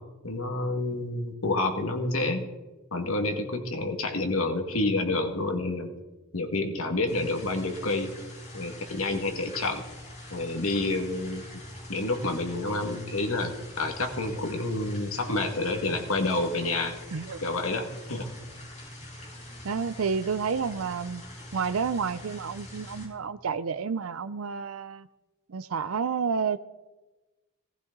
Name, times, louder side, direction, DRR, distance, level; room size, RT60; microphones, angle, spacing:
voice 1, 0.2-2.5 2.9-6.0 6.3-8.1 8.5-9.8 10.3-11.4 11.9-17.0 17.4-18.3, left 2 dB, 85° left, 4 dB, 2.1 m, -29 dB
sound 1, 7.1-23.0, left 1 dB, 35° left, 6.2 m, -44 dB
voice 2, 17.1-17.4 19.6-21.2 21.5-25.1 25.5-26.6, right 5 dB, 85° right, 13 dB, 0.5 m, -30 dB
18.5 x 15.0 x 4.0 m, 1.1 s
head